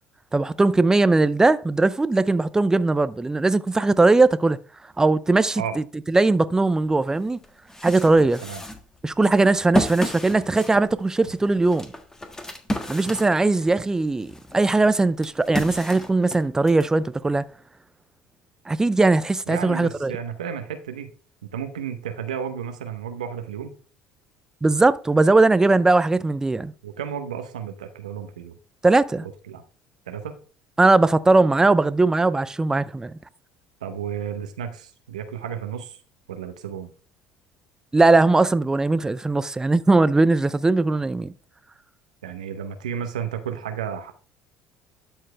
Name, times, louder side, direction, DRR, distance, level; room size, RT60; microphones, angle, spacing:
voice 1, 0.3-4.6 5.0-7.4 7.8-8.4 9.0-11.9 12.9-17.5 18.7-20.1 24.6-26.7 28.8-29.3 30.8-33.2 37.9-41.3, right 3 dB, 15° right, 0.6 m, -19 dB
sound 1, 6.9-7.0 7.4-13.8 14.2-16.9, equal, 15° left, 1.5 m, -32 dB
voice 2, 19.5-21.1 21.5-23.7 26.8-28.6 29.5-29.6 30.1-30.3 33.8-36.0 36.3-36.9 42.2-44.1, right 8 dB, 90° right, 0.9 m, -32 dB
12.0 x 4.7 x 3.3 m
hypercardioid pair, 65°, 4 cm